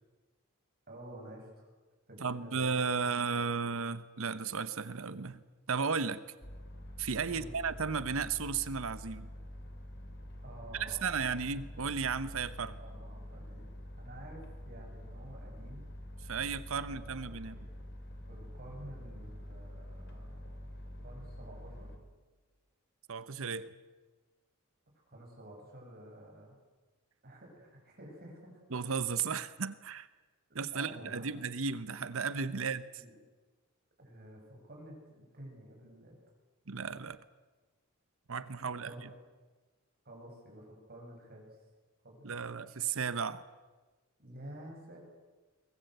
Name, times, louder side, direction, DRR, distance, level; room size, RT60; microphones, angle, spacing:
voice 1, 0.9-1.7 2.1-2.9 7.2-7.5 10.4-11.4 12.8-13.7 14.0-15.9 16.8-17.9 18.3-21.9 25.1-26.6 27.2-28.6 30.5-31.3 32.6-33.2 34.0-36.2 38.8-39.2 40.0-41.5 42.0-42.5 44.2-45.0, right 1 dB, 45° right, 0 dB, 7.5 m, -51 dB
voice 2, 2.2-5.4 5.7-6.2 7.0-9.3 10.8-12.8 16.2-17.6 23.1-23.7 28.7-30.1 30.5-32.8 36.7-37.2 38.3-38.9 42.2-43.4, right 5 dB, 70° right, 15 dB, 0.9 m, -34 dB
sound 1, 6.4-22.0, equal, 55° left, 3.3 m, -46 dB
23.0 x 20.0 x 8.1 m, 1.3 s
head